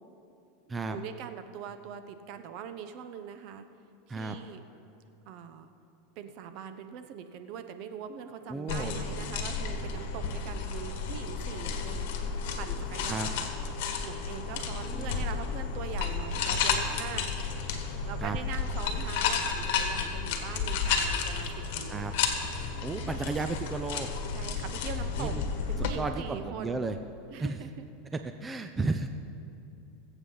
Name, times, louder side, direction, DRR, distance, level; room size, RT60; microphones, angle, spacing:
voice 1, 0.8-3.7 4.1-4.6 5.3-5.7 6.2-12.1 12.6-13.4 14.0-17.3 18.0-22.2 24.3-25.3 25.7-26.9 27.3-27.9, right 8 dB, 50° right, 9 dB, 0.8 m, -42 dB
voice 2, 8.5-8.9 13.1-13.3 14.8-15.2 18.2-18.4 21.9-22.1 22.8-24.1 25.2-25.5 26.0-27.0 27.4-27.6 28.4-29.1, right 3 dB, 15° right, 7 dB, 0.5 m, -33 dB
sound 1, 8.7-25.9, left 5 dB, 65° left, 1.5 m, -32 dB
21.0 x 8.0 x 4.0 m, 2.8 s
supercardioid pair, 140°, 0 cm